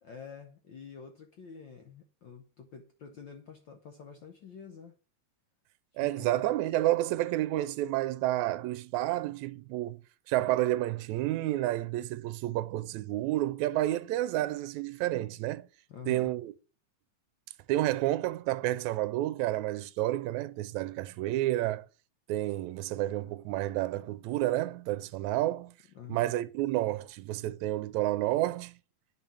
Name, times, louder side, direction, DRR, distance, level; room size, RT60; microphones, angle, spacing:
voice 1, 0.0-4.9 6.0-6.5 15.9-16.3 25.9-26.3, left 7 dB, 75° left, 1.0 m, -48 dB
voice 2, 6.0-10.0 10.3-15.7 16.1-16.5 17.7-21.9 22.3-25.7 26.1-28.8, right 15 dB, 85° right, 1.9 m, -30 dB
8.9 x 5.5 x 6.9 m
omnidirectional pair, 3.3 m